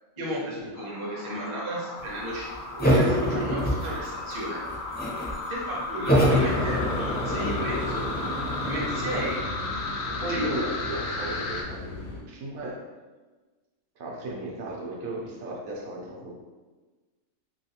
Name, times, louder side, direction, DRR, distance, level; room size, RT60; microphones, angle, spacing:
voice 1, 0.2-4.6 5.5-8.1 8.6-9.5 10.3-10.5, right 1 dB, 30° right, -4 dB, 0.5 m, -34 dB
sound 1, 0.7-11.6, left 3 dB, 65° left, 0.7 m, -34 dB
sound 2, 2.8-4.3 4.7-5.4 6.1-9.3, equal, 15° left, 0.4 m, -25 dB
sound 3, 6.3-12.2, left 2 dB, 80° left, 1.2 m, -35 dB
voice 2, 10.0-12.8 14.0-16.3, right 1 dB, 75° right, -2 dB, 1.1 m, -35 dB
3.2 x 3.0 x 2.8 m, 1.3 s
omnidirectional pair, 1.5 m